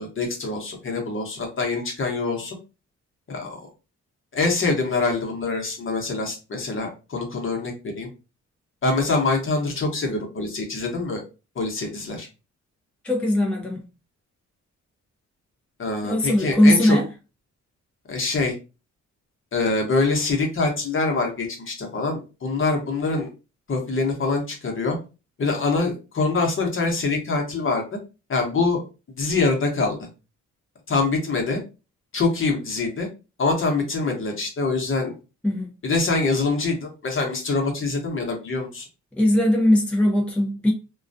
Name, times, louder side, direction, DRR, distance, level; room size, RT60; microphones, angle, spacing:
voice 1, 0.0-2.6 3.3-3.6 4.3-8.1 8.8-11.2 11.6-12.3 15.8-17.0 18.1-18.5 19.5-23.3 23.7-25.0 25.4-27.8 28.3-28.8 29.2-30.0 30.9-31.6 32.1-33.1 33.4-35.2 35.8-38.9, left 3 dB, 40° left, 1.0 m, -24 dB
voice 2, 13.0-13.9 16.0-17.1 35.4-35.7 39.2-40.7, left 1 dB, 5° left, 0.6 m, -19 dB
2.2 x 2.2 x 2.6 m
cardioid pair, 95°, 31 cm